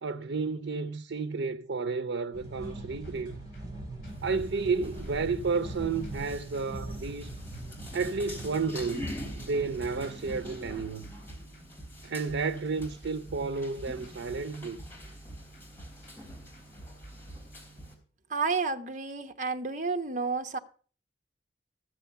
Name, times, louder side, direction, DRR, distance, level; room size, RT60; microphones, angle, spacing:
voice 1, 0.0-3.3 4.2-7.3 7.9-11.1 12.0-14.8, right 4 dB, 90° right, 0.6 m, -32 dB
sound 1, 2.3-10.8, right 1 dB, 20° right, 4.3 m, -41 dB
sound 2, 3.0-17.9, right 1 dB, 50° left, 7.6 m, -49 dB
sound 3, 4.1-17.9, left 1 dB, 10° left, 3.4 m, -47 dB
voice 2, 18.3-20.6, right 4 dB, 45° right, 1.0 m, -31 dB
14.5 x 6.8 x 6.9 m
head